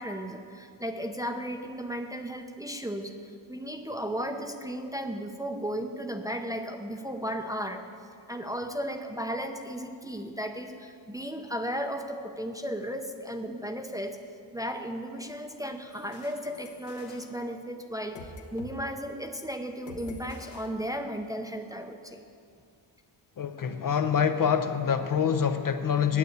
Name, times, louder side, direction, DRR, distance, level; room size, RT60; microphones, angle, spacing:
voice 1, 0.0-7.8 8.3-14.2 14.5-22.2, equal, 5° right, 4 dB, 0.7 m, -35 dB
sound 1, 15.9-18.8 19.0-19.3 19.9-21.4, left 3 dB, 65° left, 1.4 m, -47 dB
voice 2, 23.4-26.2, left 7 dB, 45° left, 8 dB, 0.7 m, -26 dB
9.5 x 8.3 x 8.0 m, 2.3 s
cardioid pair, 95°, 49 cm